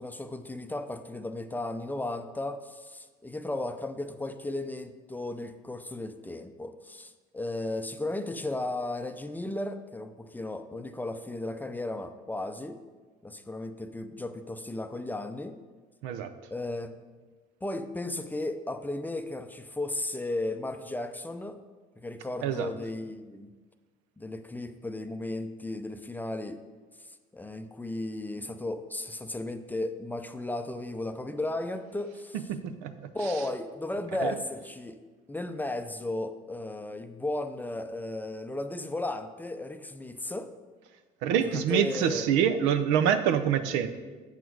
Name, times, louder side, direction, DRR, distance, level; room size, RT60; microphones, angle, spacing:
voice 1, 0.0-12.8 13.2-15.6 16.5-16.9 17.6-21.6 22.0-23.5 24.2-26.6 27.3-32.5 33.1-35.0 35.3-40.5 41.4-42.3, left 2 dB, 10° left, 8 dB, 0.5 m, -35 dB
voice 2, 32.5-32.9 34.2-34.3 41.2-43.9, right 8 dB, 80° right, 9 dB, 0.6 m, -26 dB
7.1 x 6.2 x 4.6 m, 1.3 s
supercardioid pair, 90°, 19 cm